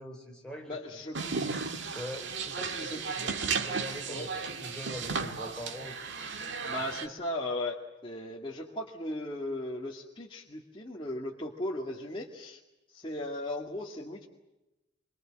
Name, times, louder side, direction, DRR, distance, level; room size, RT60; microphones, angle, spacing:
voice 1, 0.0-0.8 1.2-1.4 1.9-4.3 4.6-6.1, equal, 5° left, -1 dB, 4.6 m, -43 dB
voice 2, 0.7-1.2 2.8-3.0 4.1-4.3 6.6-12.6 12.9-14.3, left 1 dB, 25° left, -3 dB, 2.2 m, -37 dB
sound 1, 1.1-7.1, right 5 dB, 60° right, 1.8 m, -34 dB
26.5 x 24.0 x 7.8 m, 0.98 s
head